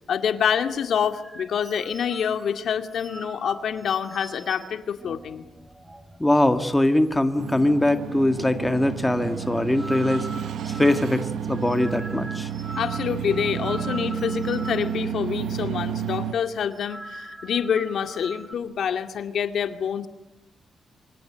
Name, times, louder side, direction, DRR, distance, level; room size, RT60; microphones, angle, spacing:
voice 1, 0.1-5.4 12.8-20.1, left 8 dB, 70° left, 8 dB, 2.1 m, -27 dB
sound 1, 0.8-6.7 7.0-7.1 7.4-8.0 8.3-15.6 15.9-16.1 16.6-18.5, right 1 dB, 10° right, 2.1 m, -42 dB
voice 2, 6.2-10.3 10.7-12.5, left 1 dB, 10° left, 8 dB, 1.8 m, -22 dB
sound 2, 7.4-16.3, right 8 dB, 85° right, 1.0 m, -31 dB
27.0 x 24.5 x 9.0 m, 0.90 s
cardioid pair, 110°, 0 cm